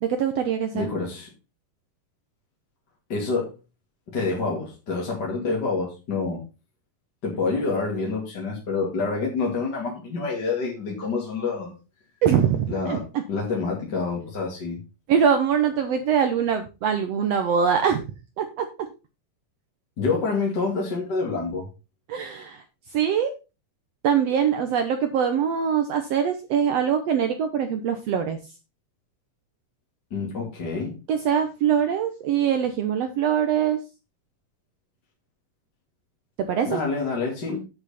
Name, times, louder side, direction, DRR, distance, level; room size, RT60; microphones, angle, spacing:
voice 1, 0.0-0.9 12.2-13.0 15.1-18.0 18.4-18.7 22.1-22.6 22.9-23.3 24.0-28.4 31.1-33.8 36.5-36.8, right 8 dB, 70° right, 7 dB, 1.6 m, -23 dB
voice 2, 0.7-1.3 3.1-3.5 4.1-6.4 7.2-11.7 12.7-14.8 20.0-21.7 30.1-31.0 36.6-37.6, left 4 dB, 35° left, -2 dB, 2.5 m, -27 dB
8.7 x 7.9 x 4.2 m, 0.29 s
omnidirectional pair, 3.8 m